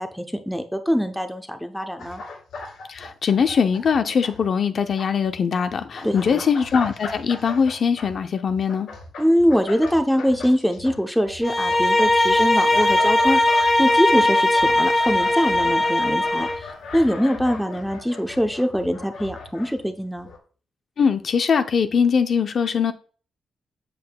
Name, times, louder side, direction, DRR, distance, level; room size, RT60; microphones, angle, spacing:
voice 1, 0.0-2.2 6.0-6.4 9.2-16.5 16.9-20.3, equal, ahead, 0.7 m, -23 dB
sound 1, 2.0-4.5 4.8-19.8 20.2-20.4, left 3 dB, 85° left, 2.3 m, -38 dB
voice 2, 2.9-8.9 21.0-22.9, left 6 dB, 50° left, 0.5 m, -21 dB
Bowed string instrument, 11.4-16.6, left 1 dB, 25° left, 1.4 m, -19 dB
7.6 x 7.5 x 2.3 m
wide cardioid pair, 145°, 0 cm